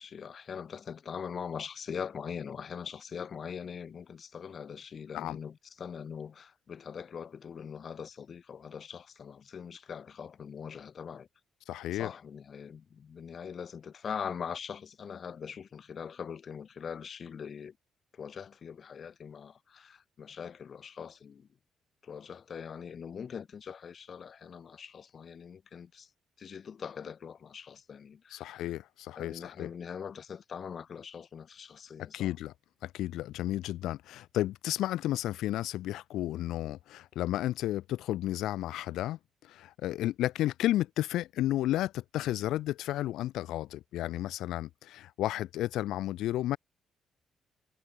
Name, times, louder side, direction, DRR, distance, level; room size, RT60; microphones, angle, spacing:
voice 1, 0.0-11.3 11.9-17.8 18.1-21.5 22.0-26.1 26.4-28.7 29.2-32.3, left 7 dB, 50° left, 1.8 m, -42 dB
voice 2, 11.7-12.1 28.3-29.7 32.1-32.5 32.8-46.6, left 14 dB, 85° left, 1.3 m, -32 dB
cardioid pair, 90°, 0 cm